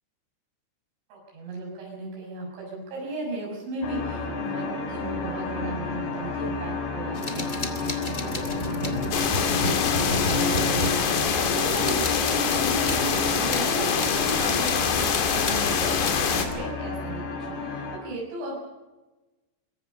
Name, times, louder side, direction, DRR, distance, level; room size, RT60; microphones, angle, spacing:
voice 1, 1.1-17.2 17.7-18.6, right 2 dB, 65° right, -2 dB, 9.1 m, -35 dB
sound 1, 3.8-18.0, left 4 dB, 85° left, 6.1 m, -32 dB
sound 2, 7.1-11.5 11.8-14.8 15.1-16.5, left 1 dB, 30° left, 1.5 m, -33 dB
sound 3, 9.1-16.5, left 6 dB, 60° left, 4.2 m, -25 dB
24.5 x 23.0 x 5.4 m, 1.1 s
omnidirectional pair, 5.7 m